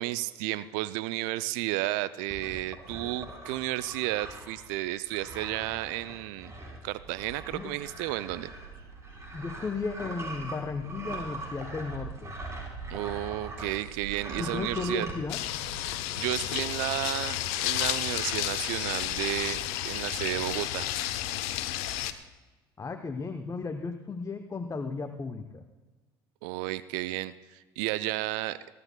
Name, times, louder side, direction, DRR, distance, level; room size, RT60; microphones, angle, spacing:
voice 1, 0.0-6.5 6.8-8.5 12.9-15.1 16.1-19.6 19.8-20.9 26.4-28.7, right 16 dB, 65° right, 16 dB, 0.5 m, -32 dB
sound 1, 2.3-13.8 14.0-15.2, right 2 dB, 25° right, 4.1 m, -42 dB
Bird vocalization bird call bird song, 7.0-16.0, right 4 dB, 80° right, 4.5 m, -46 dB
voice 2, 9.3-12.4 14.4-15.4 22.8-25.6, left 4 dB, 25° left, 6 dB, 0.8 m, -35 dB
sound 2, 15.3-22.1, left 13 dB, 65° left, 0.8 m, -32 dB
23.0 x 12.5 x 2.2 m, 1.2 s
figure-of-eight pair, 60°, 13 cm